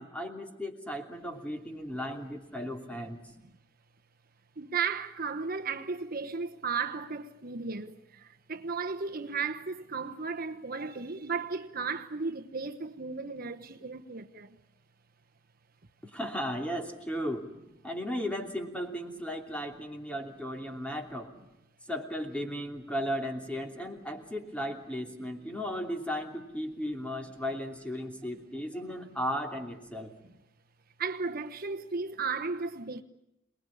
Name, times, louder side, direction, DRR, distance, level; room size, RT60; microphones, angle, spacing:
voice 1, 0.0-3.2 16.0-17.5 17.8-21.3 21.9-30.1, equal, 5° left, 3.0 m, -35 dB
voice 2, 4.6-14.6 31.0-33.0, right 5 dB, 50° right, 1.1 m, -35 dB
28.0 x 20.0 x 10.0 m
head